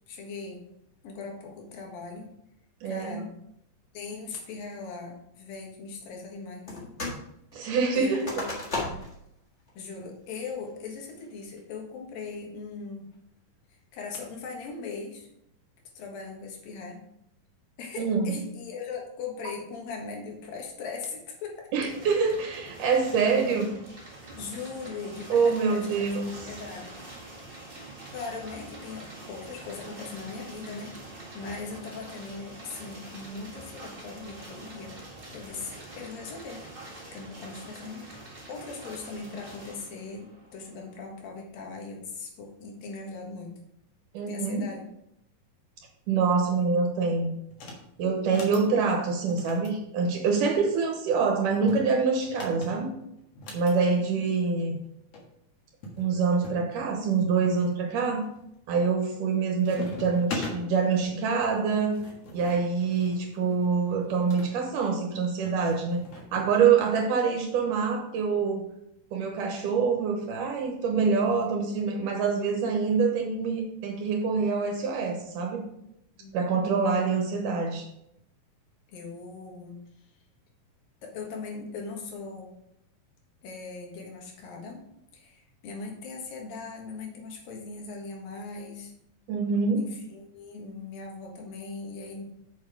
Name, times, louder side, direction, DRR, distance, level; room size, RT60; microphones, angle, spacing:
voice 1, 0.1-0.6 1.0-2.3 2.8-3.3 3.9-6.9 7.9-9.0 9.7-13.1 13.9-15.3 15.9-17.0 17.8-21.7 24.3-26.2 26.4-27.0 28.1-30.9 31.3-34.9 35.3-36.6 37.1-43.5 44.3-44.9 54.0-54.3 76.2-76.5 78.9-79.8 81.0-82.5 83.4-84.8 85.1-88.9 89.8-92.2, left 4 dB, 80° left, 0 dB, 3.3 m, -39 dB
voice 2, 2.8-3.2 7.5-8.3 18.0-18.4 21.7-23.7 25.3-26.3 44.1-44.6 46.1-47.3 48.0-52.9 53.5-54.8 56.0-58.3 58.7-62.0 62.3-66.0 66.3-68.7 69.1-75.6 76.3-77.9 89.3-89.8, right 5 dB, 75° right, 2 dB, 2.5 m, -25 dB
sound 1, 6.7-7.2 7.5-9.2 9.7-9.8 10.3-10.7 11.2-11.6, left 2 dB, 35° left, 1.2 m, -35 dB
sound 2, 21.8-41.3, right 2 dB, 25° right, 1.2 m, -45 dB
sound 3, 47.5-47.8 48.2-48.7 49.3-50.7 51.5-53.8 54.8-54.9 55.1-55.2 55.8-56.6 57.2-57.7 58.2-58.6 58.9-59.4 59.6-60.6 61.6-64.5 65.5-66.5, left 2 dB, 55° left, 2.4 m, -41 dB
7.0 x 6.4 x 4.9 m, 0.78 s
omnidirectional pair, 4.0 m